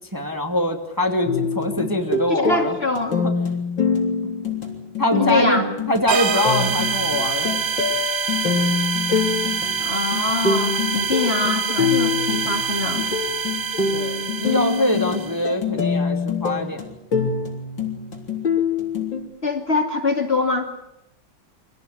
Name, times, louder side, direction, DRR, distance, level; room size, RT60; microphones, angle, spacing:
voice 1, 0.1-2.8 3.2-3.3 4.2-4.3 5.0-7.5 13.9-16.8, left 1 dB, 10° right, 3 dB, 2.3 m, -23 dB
sound 1, 1.3-19.2, left 5 dB, 65° left, 4.3 m, -25 dB
voice 2, 2.3-3.2 5.2-5.7 9.8-13.0 19.4-20.7, left 3 dB, 30° left, 4 dB, 2.6 m, -23 dB
sound 2, 6.1-15.5, right 6 dB, 80° right, 2.1 m, -26 dB
25.0 x 17.5 x 9.9 m, 0.84 s
omnidirectional pair, 2.2 m